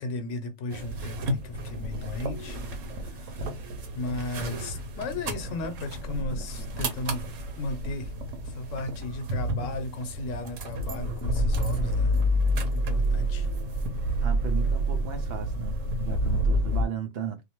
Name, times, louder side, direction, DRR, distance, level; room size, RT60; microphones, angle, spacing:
voice 1, 0.0-2.6 3.0-3.6 4.0-7.3 7.6-8.1 8.4-12.2 12.7-13.5, left 2 dB, 85° left, 1.0 m, -35 dB
sound 1, 0.7-16.8, equal, 90° right, 1.1 m, -29 dB
voice 2, 14.2-17.4, right 7 dB, 65° right, 0.7 m, -35 dB
2.5 x 2.3 x 2.9 m
omnidirectional pair, 1.3 m